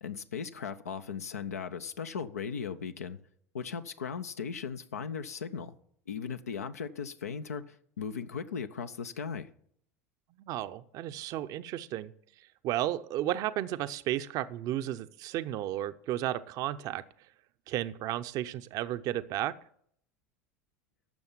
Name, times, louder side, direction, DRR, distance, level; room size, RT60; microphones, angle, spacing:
voice 1, 0.0-3.2 3.5-5.7 6.1-9.5, left 6 dB, 85° left, 9 dB, 0.6 m, -37 dB
voice 2, 10.4-12.1 12.6-17.0 17.7-19.5, right 13 dB, 50° right, 12 dB, 0.6 m, -33 dB
12.5 x 7.0 x 7.3 m, 0.66 s
hypercardioid pair, 80°, 8 cm